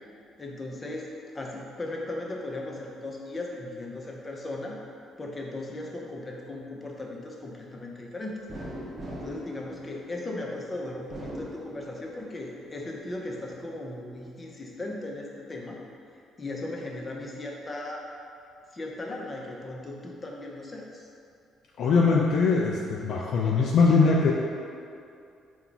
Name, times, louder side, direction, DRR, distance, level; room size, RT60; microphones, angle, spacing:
voice 1, 0.4-1.1 1.3-4.8 5.2-8.4 9.2-15.8 16.4-18.0 18.7-21.1, left 2 dB, 30° left, -1 dB, 0.7 m, -37 dB
sound 1, 8.5-10.4 10.9-12.3 12.7-13.6, equal, 40° right, 0.7 m, -40 dB
voice 2, 21.8-24.3, left 4 dB, 65° left, -2 dB, 0.3 m, -21 dB
4.3 x 2.3 x 3.9 m, 2.5 s
hypercardioid pair, 50°, 0 cm